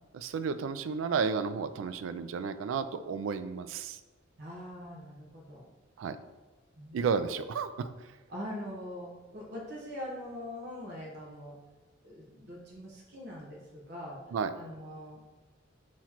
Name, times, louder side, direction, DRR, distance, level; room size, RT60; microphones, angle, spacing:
voice 1, 0.1-4.0 6.0-6.2 6.9-7.9 14.3-14.5, right 5 dB, 75° right, 11 dB, 0.3 m, -32 dB
voice 2, 4.4-5.6 6.8-7.1 8.3-11.6 12.0-14.2 14.5-15.2, left 1 dB, 60° right, -4 dB, 0.9 m, -42 dB
5.7 x 3.0 x 2.9 m, 1.2 s
head